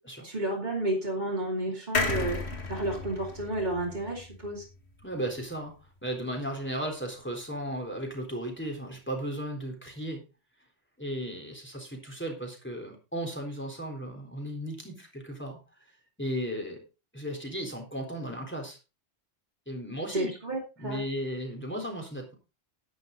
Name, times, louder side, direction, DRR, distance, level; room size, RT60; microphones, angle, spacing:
voice 1, 0.2-2.4 2.7-4.6 20.1-21.0, right 1 dB, 45° right, -3 dB, 3.2 m, -31 dB
sound 1, 1.9-5.4 5.8-5.9 6.1-6.2, left 3 dB, 75° left, 2.3 m, -34 dB
voice 2, 5.0-10.2 11.0-15.6 16.2-16.8 17.1-18.8 19.7-20.3 20.8-22.3, right 1 dB, 10° left, 1 dB, 3.8 m, -35 dB
11.0 x 10.5 x 3.9 m, 0.30 s
omnidirectional pair, 1.1 m